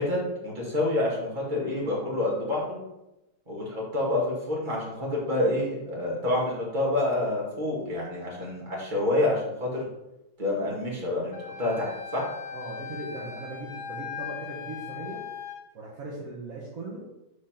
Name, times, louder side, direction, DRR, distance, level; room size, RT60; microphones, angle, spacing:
voice 1, 0.0-2.8 3.5-9.8 10.4-12.3, left 2 dB, 30° right, -4 dB, 2.0 m, -28 dB
Wind instrument woodwind instrument, 11.3-15.6, left 7 dB, 65° left, 1.4 m, -39 dB
voice 2, 12.5-15.2 15.7-17.0, right 2 dB, 60° right, -5 dB, 1.6 m, -38 dB
5.1 x 4.1 x 5.6 m, 0.93 s
omnidirectional pair, 1.6 m